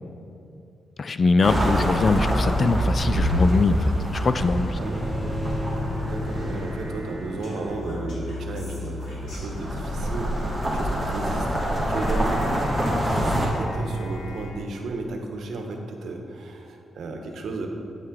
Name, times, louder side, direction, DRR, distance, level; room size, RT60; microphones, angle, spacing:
voice 1, 1.0-4.8, left 4 dB, 40° left, 12 dB, 0.3 m, -22 dB
sound 1, 1.4-7.9 9.0-13.5, equal, 5° right, 1.9 m, -26 dB
voice 2, 4.7-5.2 6.0-12.5 13.1-17.7, right 2 dB, 75° right, 3 dB, 1.1 m, -34 dB
Bowed string instrument, 4.8-7.9, left 2 dB, 25° left, 0.9 m, -35 dB
sound 2, 5.8-14.5, left 1 dB, 75° left, 2.3 m, -35 dB
9.2 x 8.6 x 3.8 m, 2.7 s
wide cardioid pair, 140°, 0 cm